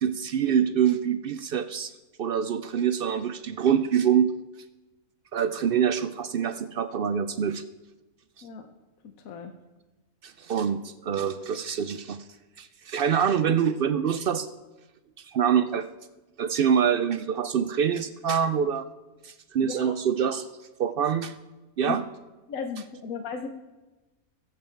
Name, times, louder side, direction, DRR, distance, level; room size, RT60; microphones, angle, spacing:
voice 1, 0.0-1.9 2.2-4.4 5.3-7.6 10.2-12.2 12.6-14.5 15.3-15.9 16.4-18.9 19.2-20.5 20.8-21.3 21.8-22.0, right 8 dB, 70° right, 12 dB, 0.5 m, -25 dB
voice 2, 9.0-9.6 19.6-20.0 21.9-22.0 22.5-23.5, left 6 dB, 75° left, 6 dB, 1.3 m, -35 dB
21.5 x 7.8 x 4.5 m, 1.1 s
omnidirectional pair, 1.5 m